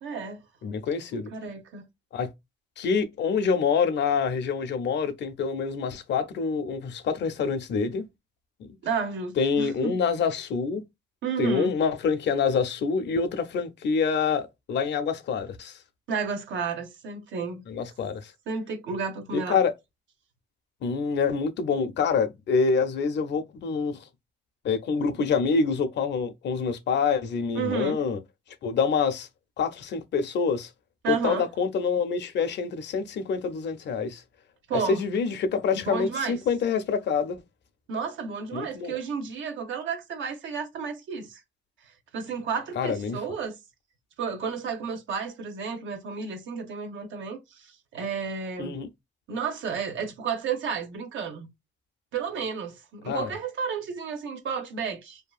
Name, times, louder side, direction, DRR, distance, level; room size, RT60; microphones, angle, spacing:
voice 1, 0.0-0.4 1.1-1.9 8.8-10.0 11.2-11.7 16.1-17.6 18.5-19.6 27.5-28.0 31.0-31.5 34.7-35.0 35.7-36.4 37.9-41.4 41.8-43.6 44.2-48.7 49.3-51.5 52.1-55.2, right 5 dB, 75° right, 0.8 m, -32 dB
voice 2, 0.6-1.3 2.1-2.3 2.8-8.0 9.4-10.8 11.4-15.8 17.7-18.3 19.3-19.7 20.8-24.0 24.6-28.2 28.6-29.3 29.6-30.7 31.1-34.2 34.9-37.4 38.5-38.9 42.8-43.2 48.6-48.9 53.1-53.3, left 5 dB, 60° left, 0.6 m, -26 dB
2.7 x 2.3 x 2.3 m
cardioid pair, 90°, 20 cm